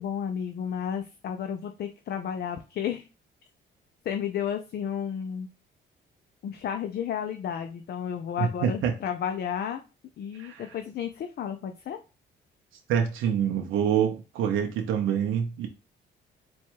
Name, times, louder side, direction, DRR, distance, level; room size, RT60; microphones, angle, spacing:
voice 1, 0.0-3.1 4.0-5.5 6.4-9.8 10.2-12.0, left 8 dB, 55° left, 0.5 m, -32 dB
voice 2, 8.4-8.9 10.4-10.6 12.9-15.7, right 8 dB, 85° right, 0.6 m, -26 dB
4.3 x 2.3 x 4.4 m
cardioid pair, 90°, 20 cm